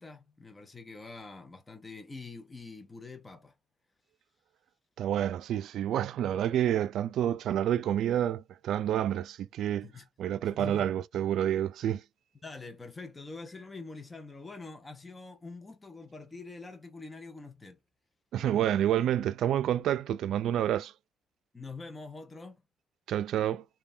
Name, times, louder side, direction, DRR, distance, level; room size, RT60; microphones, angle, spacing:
voice 1, 0.0-3.5 9.8-10.1 10.5-11.0 12.4-17.8 21.5-22.6, left 3 dB, 20° left, 0.5 m, -45 dB
voice 2, 5.0-9.9 10.2-12.0 18.3-20.9 23.1-23.6, right 11 dB, 70° right, 0.3 m, -28 dB
3.2 x 2.2 x 2.4 m
cardioid pair, 135°, 0 cm